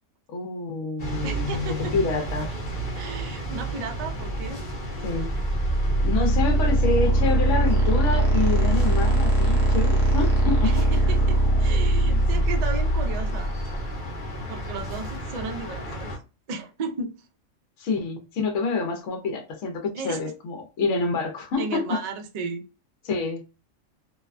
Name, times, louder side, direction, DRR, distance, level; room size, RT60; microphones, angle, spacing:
voice 1, 0.3-1.5 1.9-2.5 5.0-5.3 6.0-10.7 17.8-22.0 23.0-23.4, left 4 dB, 65° left, 3 dB, 1.0 m, -27 dB
sound 1, 1.0-16.2, equal, 45° left, 0.9 m, -34 dB
voice 2, 1.2-2.0 3.0-4.6 10.6-13.5 14.5-16.1 16.5-17.1 19.9-20.2 21.6-22.6, right 4 dB, 75° right, 3 dB, 0.3 m, -34 dB
sound 2, 5.0-13.9, right 1 dB, 50° right, 0.9 m, -21 dB
2.7 x 2.2 x 2.4 m, 0.31 s
omnidirectional pair, 1.4 m